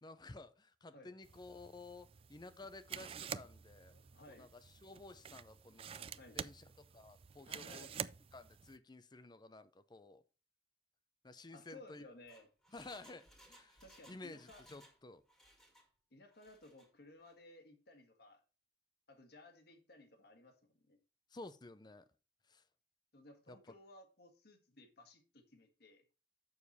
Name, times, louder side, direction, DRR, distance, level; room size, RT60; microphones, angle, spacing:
voice 1, 0.0-4.0 4.3-6.7 6.9-7.9 8.3-10.2 11.2-12.0 12.7-13.8 14.1-15.2 21.3-22.1 22.4-22.6 23.5-23.7, left 2 dB, 25° left, 0.6 m, -53 dB
sound 1, 1.2-8.8, right 7 dB, 35° right, 0.4 m, -49 dB
voice 2, 3.9-4.5 6.2-6.4 7.5-8.0 11.5-12.5 13.8-14.6 16.1-18.4 19.1-21.0 23.1-26.1, left 2 dB, 65° left, 1.6 m, -58 dB
Engine, 12.3-15.0 15.3-15.9 16.3-16.9 17.2-17.3, equal, ahead, 1.8 m, -64 dB
7.1 x 6.6 x 4.2 m
head